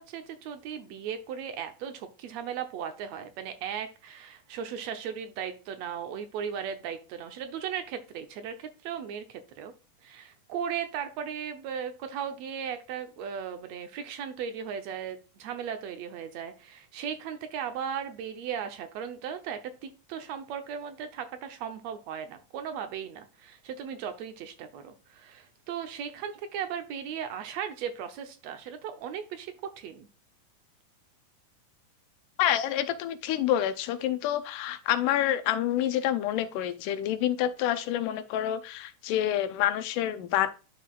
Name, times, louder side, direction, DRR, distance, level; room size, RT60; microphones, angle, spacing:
voice 1, 0.0-9.7 10.0-30.1, right 8 dB, 70° right, 1.8 m, -37 dB
voice 2, 32.4-40.5, left 11 dB, 90° left, 2.3 m, -27 dB
11.0 x 4.6 x 2.3 m
omnidirectional pair, 3.6 m